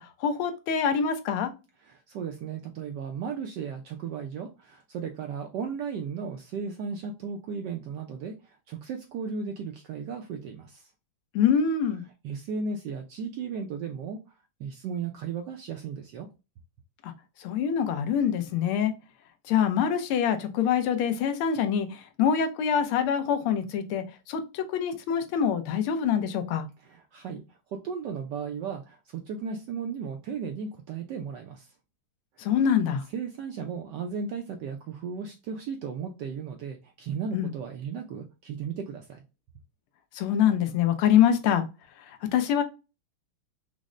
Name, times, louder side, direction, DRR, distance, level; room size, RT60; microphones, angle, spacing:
voice 1, 0.0-1.5 11.3-12.0 17.0-17.1 17.4-18.9 19.5-26.7 32.4-33.0 37.3-37.5 40.1-41.6 42.1-42.6, left 8 dB, 85° left, 1.5 m, -25 dB
voice 2, 1.8-10.9 12.2-14.2 14.6-16.3 26.8-31.7 32.4-32.5 33.1-39.2, right 6 dB, 75° right, 1.0 m, -35 dB
5.2 x 2.0 x 2.4 m
omnidirectional pair, 2.3 m